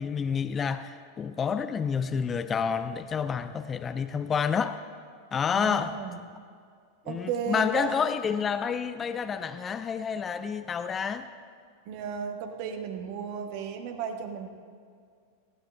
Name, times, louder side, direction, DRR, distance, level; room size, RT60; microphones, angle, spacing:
voice 1, 0.0-4.8 5.3-6.0 7.1-11.3, left 6 dB, 20° left, 11 dB, 0.4 m, -29 dB
voice 2, 5.5-6.2 7.0-8.0 11.9-14.5, right 6 dB, 45° right, 5 dB, 1.2 m, -34 dB
20.0 x 16.0 x 2.3 m, 2.1 s
figure-of-eight pair, 90°, 0 cm